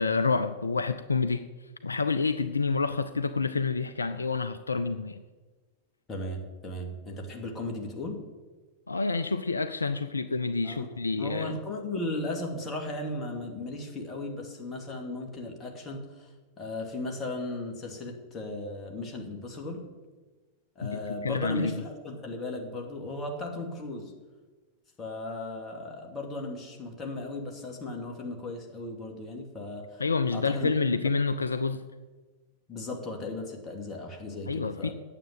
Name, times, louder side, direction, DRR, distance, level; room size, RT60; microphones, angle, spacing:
voice 1, 0.0-1.4 1.8-5.2 8.9-11.6 20.8-21.7 30.0-31.8 34.5-34.9, left 4 dB, 75° left, 12 dB, 0.4 m, -28 dB
voice 2, 6.1-8.2 10.6-10.9 11.2-16.3 16.6-19.8 20.8-24.1 25.0-30.0 30.3-30.7 32.7-34.9, left 2 dB, 25° left, 2 dB, 2.4 m, -36 dB
9.2 x 7.5 x 9.0 m, 1.3 s
figure-of-eight pair, 90°, 0 cm